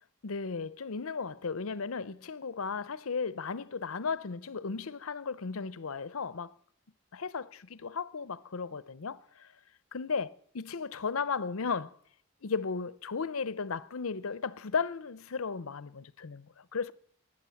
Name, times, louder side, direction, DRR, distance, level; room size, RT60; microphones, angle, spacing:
voice 1, 0.2-6.5 7.1-9.5 9.9-12.0 12.4-16.9, left 5 dB, 90° left, 0.7 m, -35 dB
20.5 x 9.8 x 7.1 m
head